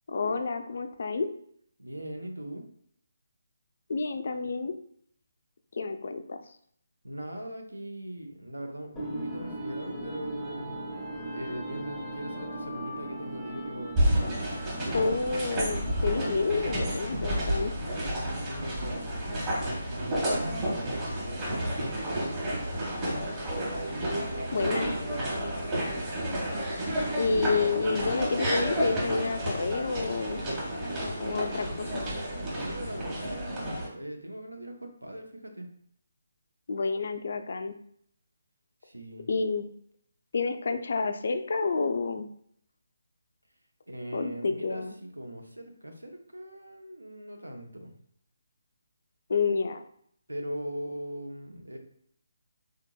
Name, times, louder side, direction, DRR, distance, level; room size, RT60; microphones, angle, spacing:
voice 1, 0.1-1.3 3.9-4.7 5.7-6.4 14.9-17.7 24.5-24.9 27.2-30.4 31.2-32.0 36.7-37.7 39.3-39.7 40.3-42.3 44.1-44.9 49.3-49.8, left 4 dB, 55° left, 7 dB, 0.3 m, -29 dB
voice 2, 1.8-2.6 7.0-10.8 11.3-14.0 18.1-19.3 19.9-23.3 24.1-25.3 25.6-26.0 32.4-35.7 38.8-39.3 43.9-47.9 50.3-51.8, right 1 dB, 80° right, 3 dB, 0.7 m, -40 dB
sound 1, 9.0-17.1, right 1 dB, 5° left, 0.6 m, -39 dB
sound 2, 14.0-33.9, equal, 20° right, 1.0 m, -31 dB
3.6 x 2.7 x 2.2 m, 0.65 s
figure-of-eight pair, 145°, 0 cm